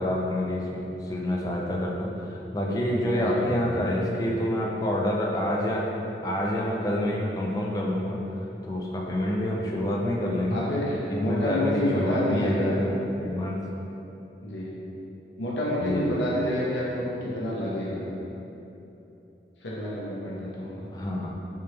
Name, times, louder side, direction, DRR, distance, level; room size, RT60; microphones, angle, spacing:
voice 1, 0.0-5.9 6.2-8.2 8.6-10.6 11.1-13.7 15.8-16.2 20.9-21.3, left 1 dB, 20° left, -2 dB, 0.3 m, -27 dB
voice 2, 2.7-3.7 10.5-12.7 14.4-14.7 15.4-18.1 19.6-20.8, left 1 dB, 85° left, -6 dB, 0.7 m, -29 dB
3.4 x 3.1 x 2.9 m, 3.0 s
head